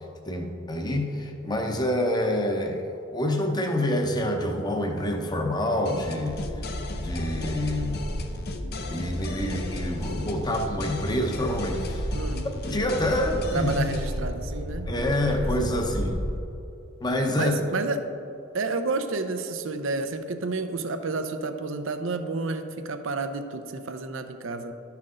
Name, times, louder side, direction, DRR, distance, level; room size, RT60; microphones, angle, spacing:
voice 1, 0.2-6.7 6.9-8.0 8.9-12.1 12.7-13.9 14.9-16.2 17.0-17.5, left 1 dB, 20° left, 3 dB, 0.8 m, -27 dB
sound 1, 5.8-14.2, left 2 dB, 50° left, 0.6 m, -37 dB
sound 2, 6.3-16.4, equal, 30° right, 1.0 m, -33 dB
voice 2, 12.1-12.5 13.5-15.7 17.3-18.1 18.5-24.7, right 3 dB, 65° right, 8 dB, 0.6 m, -30 dB
12.0 x 5.8 x 3.8 m, 2.8 s
head